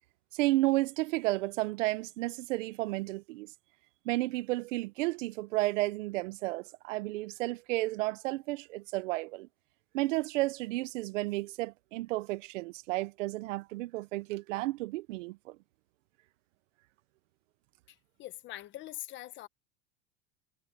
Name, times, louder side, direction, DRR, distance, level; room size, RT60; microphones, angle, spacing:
voice 1, 0.3-3.5 4.0-9.5 9.9-15.6, right 19 dB, 85° right, 0.8 m, -32 dB
voice 2, 17.9-19.5, left 15 dB, 30° left, 1.0 m, -43 dB
supercardioid pair, 165°, 36 cm